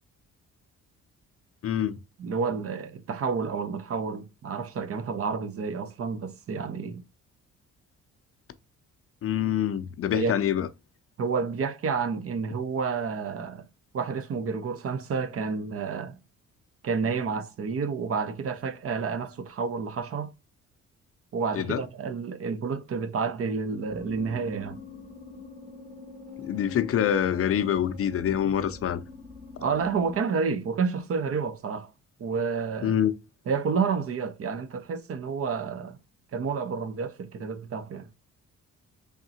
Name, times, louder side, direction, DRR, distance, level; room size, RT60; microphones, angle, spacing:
voice 1, 1.6-2.0 9.2-10.7 21.5-21.8 26.4-29.0 32.8-33.1, left 9 dB, 50° left, 0.5 m, -25 dB
voice 2, 2.2-7.0 10.1-10.4 11.2-13.6 13.9-16.1 16.8-20.3 21.3-24.8 29.6-31.9 32.2-33.0 33.5-36.0 36.3-38.1, right 5 dB, 50° right, 0.7 m, -30 dB
sound 1, 23.9-30.2, left 5 dB, 30° right, 1.3 m, -44 dB
4.0 x 3.6 x 2.7 m
cardioid pair, 90°, 30 cm